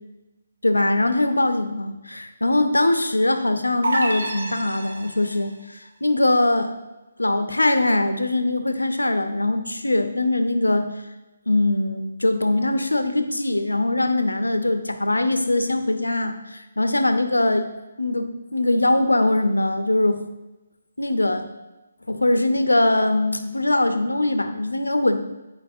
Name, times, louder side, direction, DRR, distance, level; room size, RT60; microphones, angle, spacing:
voice 1, 0.6-6.7 7.2-10.9 11.5-17.7 18.0-20.2 21.0-21.5 22.1-25.2, left 2 dB, 80° left, 8 dB, 0.6 m, -21 dB
sound 1, 3.8-5.5, right 2 dB, 65° right, 0.8 m, -28 dB
9.6 x 4.6 x 2.7 m, 1.1 s
figure-of-eight pair, 145°, 0 cm